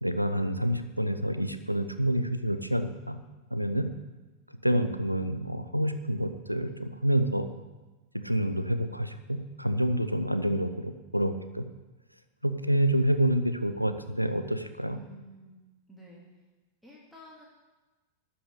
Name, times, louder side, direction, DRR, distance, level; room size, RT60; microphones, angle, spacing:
voice 1, 0.0-3.2 3.5-3.9 4.6-7.5 8.1-11.7 12.4-15.0, equal, 90° right, 9 dB, 0.8 m, -28 dB
voice 2, 14.9-15.5 15.9-16.2 16.8-17.4, equal, ahead, -5 dB, 2.5 m, -50 dB
12.5 x 5.8 x 8.4 m, 1.2 s
figure-of-eight pair, 90°, 0 cm